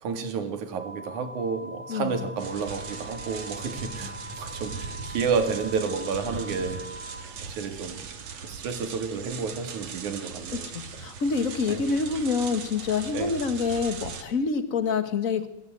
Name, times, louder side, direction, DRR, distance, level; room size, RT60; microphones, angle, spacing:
voice 1, 0.0-6.8 7.6-8.0 8.4-10.7 11.7-11.8 13.1-13.4, right 5 dB, 85° right, 8 dB, 3.6 m, -30 dB
sound 1, 0.8-7.2, equal, 5° left, 1.7 m, -43 dB
sound 2, 2.4-14.2, right 5 dB, 60° right, 3.0 m, -39 dB
voice 2, 10.5-15.5, left 5 dB, 35° left, 10 dB, 1.7 m, -27 dB
24.0 x 17.5 x 9.4 m, 0.89 s
omnidirectional pair, 3.3 m